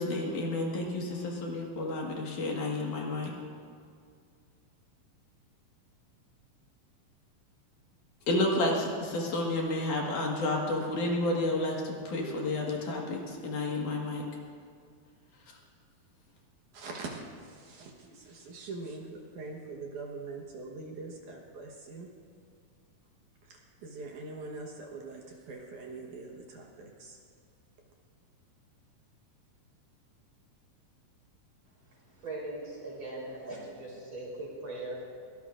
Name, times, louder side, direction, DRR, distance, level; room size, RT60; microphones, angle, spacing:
voice 1, 0.0-3.3 8.3-14.2, left 2 dB, 65° left, -1 dB, 3.1 m, -31 dB
voice 2, 16.7-22.1 23.4-27.2, right 3 dB, 70° right, 0 dB, 2.6 m, -43 dB
voice 3, 31.9-35.0, right 2 dB, 35° right, -4 dB, 4.3 m, -40 dB
23.0 x 18.0 x 2.5 m, 2.2 s
omnidirectional pair, 3.9 m